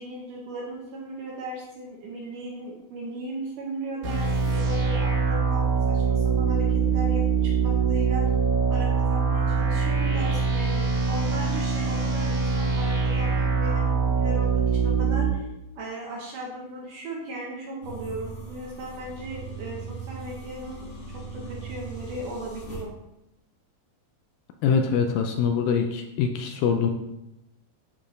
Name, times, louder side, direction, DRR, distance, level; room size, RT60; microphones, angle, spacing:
voice 1, 0.0-8.2 8.7-13.9 14.2-15.5 15.8-20.9 21.1-22.9, right 1 dB, 65° right, -3 dB, 2.3 m, -37 dB
sound 1, 4.0-15.3, right 5 dB, 85° right, 5.0 m, -23 dB
sound 2, 17.8-22.8, right 4 dB, 55° left, 0.8 m, -39 dB
voice 2, 24.6-26.9, left 6 dB, 80° left, 5 dB, 2.1 m, -24 dB
11.0 x 4.3 x 3.2 m, 0.89 s
omnidirectional pair, 4.5 m